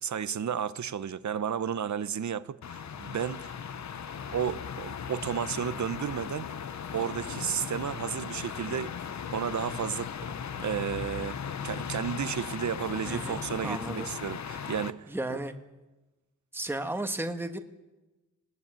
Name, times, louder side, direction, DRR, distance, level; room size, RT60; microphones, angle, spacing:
voice 1, 0.0-3.5 4.3-6.5 6.9-10.1 10.6-11.4 11.6-15.4, right 8 dB, 65° right, 0.9 m, -33 dB
sound 1, 2.6-14.9, left 7 dB, 60° left, 0.9 m, -38 dB
voice 2, 13.0-14.1 14.5-14.6 15.1-15.5 16.5-17.6, right 1 dB, 5° right, 1.3 m, -34 dB
19.5 x 18.5 x 9.1 m
wide cardioid pair, 145°, 32 cm